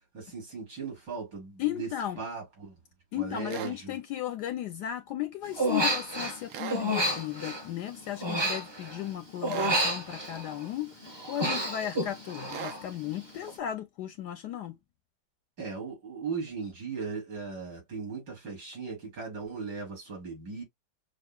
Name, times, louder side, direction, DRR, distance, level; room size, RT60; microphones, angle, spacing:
voice 1, 0.1-1.9 2.2-2.7 3.1-4.0 15.6-20.6, right 5 dB, 65° right, 3.9 m, -38 dB
voice 2, 1.6-2.2 3.1-14.8, left 11 dB, 70° left, 1.0 m, -35 dB
sound 1, 3.5-3.8 6.5-6.9 9.5-9.8 12.5-12.8, right 10 dB, 80° right, 0.8 m, -38 dB
Human voice, 5.6-6.4 6.7-9.1 9.4-10.7 11.0-12.8 13.1-13.5, equal, 20° right, 0.8 m, -30 dB
6.5 x 2.3 x 2.2 m
omnidirectional pair, 2.1 m